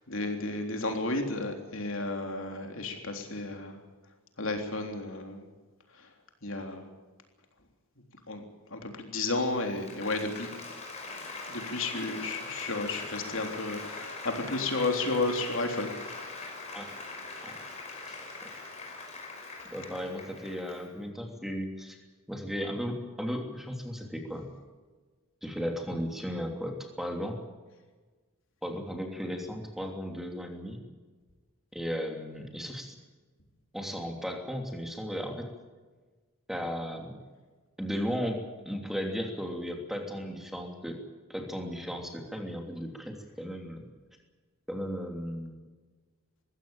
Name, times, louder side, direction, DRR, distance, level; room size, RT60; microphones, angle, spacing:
voice 1, 0.1-3.8 4.4-5.4 6.4-6.8 8.3-8.4 8.7-10.5 11.5-15.9, left 2 dB, 60° left, 4 dB, 3.6 m, -32 dB
Applause, 9.4-20.9, left 3 dB, 30° left, 5.3 m, -42 dB
voice 2, 19.7-22.0 22.3-24.5 25.4-27.4 28.6-30.8 31.7-32.9 33.7-35.5 36.5-37.2 37.8-41.0 41.3-43.9 44.7-45.6, equal, ahead, 3 dB, 3.0 m, -35 dB
21.5 x 16.0 x 9.0 m, 1.3 s
head